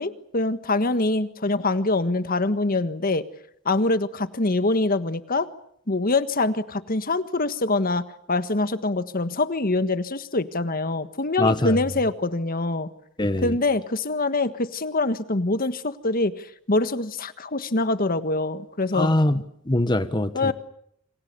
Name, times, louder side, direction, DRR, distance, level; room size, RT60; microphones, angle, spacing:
voice 1, 0.0-3.2 3.6-5.5 5.9-12.9 13.4-19.1 20.3-20.5, left 2 dB, 45° left, 11 dB, 1.5 m, -24 dB
voice 2, 11.4-11.8 13.2-13.5 18.9-20.5, left 1 dB, 20° left, 11 dB, 1.3 m, -23 dB
28.5 x 27.0 x 7.0 m, 0.71 s
head